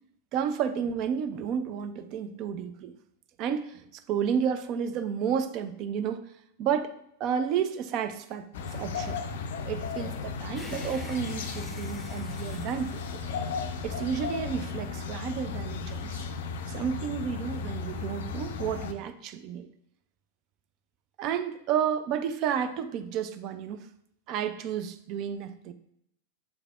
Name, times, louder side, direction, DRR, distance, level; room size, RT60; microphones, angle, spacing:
voice 1, 0.3-2.9 3.4-6.3 6.6-6.9 7.2-9.2 9.7-13.2 13.8-16.2 16.7-19.7 21.2-23.9 24.3-25.7, right 8 dB, 40° right, 9 dB, 0.3 m, -31 dB
sound 1, 8.5-18.9, left 5 dB, 55° left, 0.3 m, -35 dB
sound 2, 10.5-14.0, equal, 5° left, 0.8 m, -46 dB
7.0 x 3.2 x 2.3 m, 0.74 s
figure-of-eight pair, 90°, 0 cm